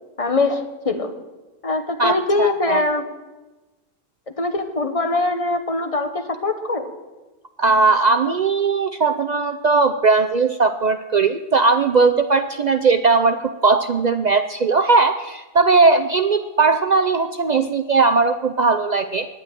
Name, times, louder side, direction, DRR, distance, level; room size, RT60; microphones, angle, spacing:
voice 1, 0.2-1.1 1.6-3.0 4.3-6.9, left 2 dB, 30° left, 6 dB, 1.1 m, -22 dB
voice 2, 2.0-2.8 7.6-19.3, right 4 dB, 60° right, 8 dB, 0.4 m, -18 dB
10.5 x 9.0 x 9.0 m, 1.1 s
omnidirectional pair, 1.3 m